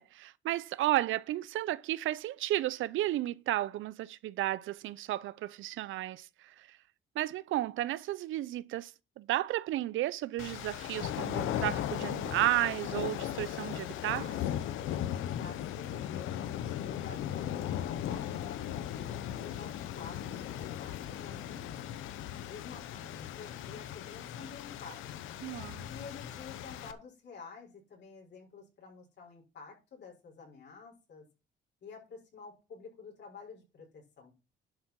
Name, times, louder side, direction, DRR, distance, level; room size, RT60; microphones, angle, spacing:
voice 1, 0.0-6.8 7.2-14.4 25.4-25.9, right 15 dB, 80° right, 0.6 m, -33 dB
sound 1, 10.4-26.9, left 11 dB, 90° left, 0.9 m, -37 dB
voice 2, 15.3-21.8 22.4-25.1 25.9-31.2 31.8-34.3, left 5 dB, 60° left, 6.1 m, -50 dB
11.0 x 7.4 x 4.6 m
cardioid pair, 90°, 20 cm